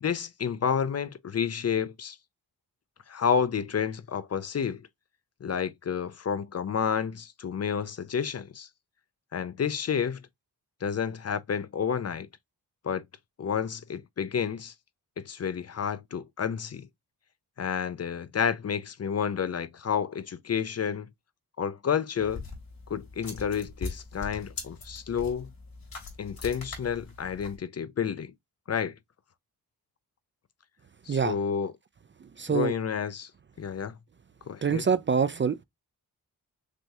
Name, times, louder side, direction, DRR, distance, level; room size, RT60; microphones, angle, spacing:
voice 1, 0.0-2.2 3.1-4.8 5.4-8.7 9.3-10.2 10.8-12.3 12.8-13.0 13.4-14.7 15.2-16.9 17.6-21.1 21.6-22.4 22.9-25.5 26.2-28.3 28.7-28.9 31.1-31.7 32.5-33.3 33.6-33.9 34.5-34.8, left 7 dB, 40° left, 0.5 m, -30 dB
sound 1, 22.2-27.6, left 4 dB, 60° left, 2.7 m, -41 dB
voice 2, 32.4-32.7 34.6-35.6, right 6 dB, 30° right, 0.4 m, -25 dB
6.1 x 2.3 x 2.7 m
cardioid pair, 80°, 39 cm